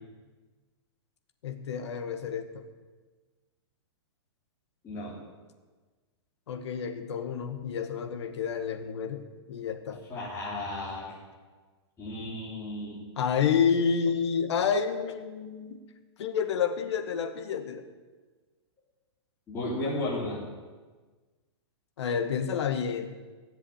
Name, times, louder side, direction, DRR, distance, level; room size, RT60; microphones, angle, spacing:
voice 1, 1.4-2.6 6.5-10.0 13.2-15.8 16.2-17.8 22.0-23.1, left 7 dB, 65° left, 7 dB, 1.8 m, -29 dB
voice 2, 10.1-11.1 12.0-13.0 19.5-20.4, left 1 dB, 15° left, -9 dB, 3.9 m, -34 dB
17.0 x 7.6 x 8.1 m, 1.4 s
hypercardioid pair, 150°, 15 cm